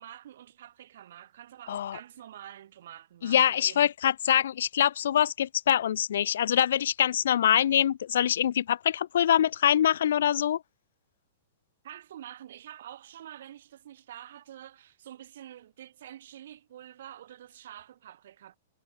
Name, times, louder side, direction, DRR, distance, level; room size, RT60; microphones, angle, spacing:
voice 1, 0.0-3.9 11.8-18.6, right 11 dB, 70° right, 7.5 m, -47 dB
voice 2, 3.2-10.6, left 10 dB, 75° left, 1.0 m, -24 dB
hypercardioid pair, 135°, 0 cm